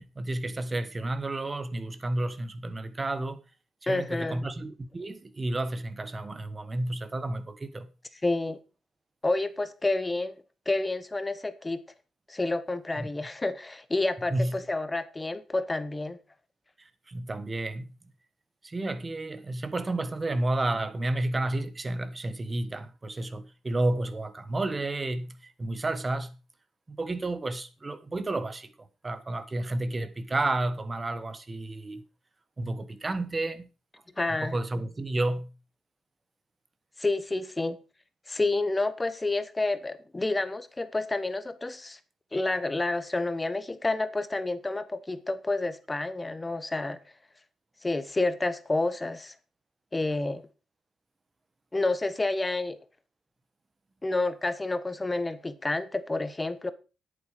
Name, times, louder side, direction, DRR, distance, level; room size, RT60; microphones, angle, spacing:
voice 1, 0.0-3.4 3.8-7.9 13.0-13.1 14.3-14.6 16.8-17.9 18.6-26.3 26.9-32.0 32.6-33.7 34.3-35.5, right 2 dB, 20° right, 1.2 m, -31 dB
voice 2, 3.9-4.4 8.2-8.6 9.2-10.3 10.7-11.8 12.3-16.2 34.2-34.6 37.0-37.8 38.3-42.0 42.3-47.0 47.8-49.3 49.9-50.4 51.7-52.8 54.0-56.7, left 2 dB, 15° left, 1.0 m, -29 dB
10.5 x 8.9 x 4.9 m
cardioid pair, 145°, 0 cm